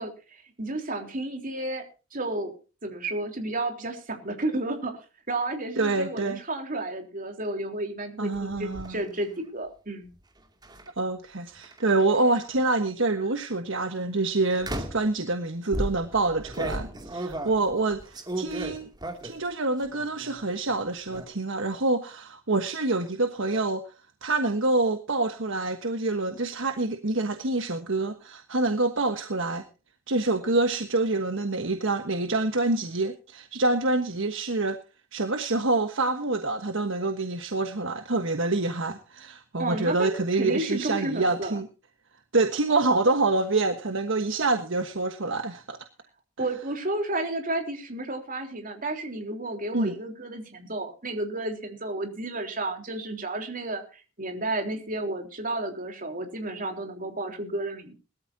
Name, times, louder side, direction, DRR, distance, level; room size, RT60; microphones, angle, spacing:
voice 1, 0.0-1.9 2.1-2.5 2.8-5.0 5.3-10.1 39.6-41.6 46.4-57.9, right 2 dB, 45° right, 4 dB, 3.6 m, -32 dB
voice 2, 5.8-6.4 8.2-9.0 11.0-18.9 19.2-23.9 24.2-29.6 30.1-34.8 35.1-41.7 42.3-45.8 49.7-49.9, right 2 dB, 65° right, 7 dB, 1.4 m, -26 dB
sound 1, 8.3-8.9 10.6-10.9 11.6-12.5 13.2-13.5 14.6-15.1 15.7-19.5 19.8-20.4 20.6-21.2, right 1 dB, 20° right, 2.6 m, -35 dB
20.5 x 13.5 x 2.8 m, 0.33 s
head